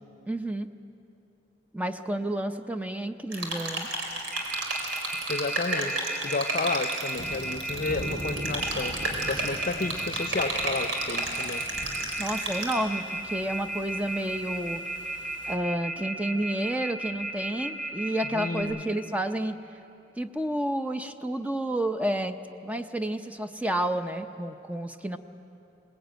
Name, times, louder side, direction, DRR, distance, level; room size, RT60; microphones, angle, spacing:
voice 1, 0.3-0.7 1.7-3.9 12.2-14.8 15.5-19.6 20.2-22.4 22.6-25.2, right 1 dB, 10° right, 7 dB, 0.6 m, -30 dB
sound 1, 3.3-12.7, right 2 dB, 90° right, 3.9 m, -32 dB
Telephone, 4.3-18.6, right 2 dB, 45° right, 5.2 m, -34 dB
voice 2, 5.3-9.0 9.2-11.7 18.3-18.8, left 3 dB, 45° left, 12 dB, 0.7 m, -32 dB
sound 2, 7.2-15.5, right 1 dB, 70° right, 2.4 m, -42 dB
21.5 x 20.0 x 9.1 m, 2.9 s
head